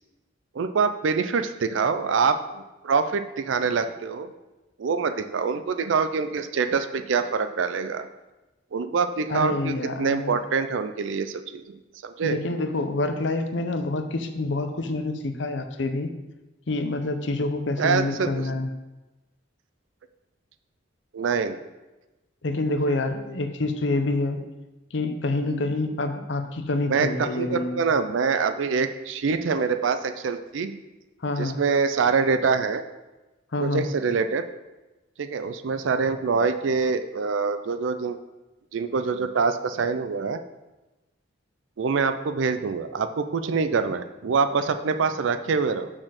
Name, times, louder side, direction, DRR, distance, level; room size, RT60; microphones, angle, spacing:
voice 1, 0.5-4.3 4.8-8.1 8.7-12.4 17.8-18.4 21.1-21.6 25.4-25.7 26.9-30.7 31.4-32.8 33.6-34.4 35.2-38.2 38.7-40.4 41.8-45.9, right 5 dB, 75° right, 9 dB, 0.4 m, -25 dB
voice 2, 9.3-10.4 12.2-16.1 16.7-18.7 22.4-24.4 24.9-27.8 31.2-31.6 33.5-33.9, left 2 dB, 65° left, 7 dB, 0.7 m, -27 dB
6.2 x 4.2 x 6.4 m, 1.1 s
head